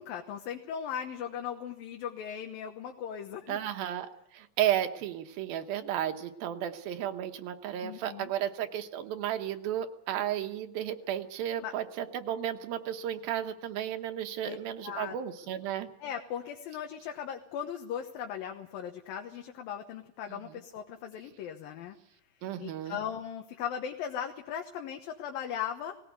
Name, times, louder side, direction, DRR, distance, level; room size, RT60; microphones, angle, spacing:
voice 1, 0.0-3.6 7.8-8.3 11.6-11.7 14.4-14.6 14.8-15.2 16.0-22.0 22.6-26.0, left 8 dB, 80° left, 3 dB, 2.9 m, -38 dB
voice 2, 3.5-4.1 4.3-15.9 20.3-20.4 22.4-23.0, right 11 dB, 85° right, 7 dB, 2.9 m, -33 dB
19.0 x 17.5 x 8.1 m, 0.78 s
omnidirectional pair, 4.1 m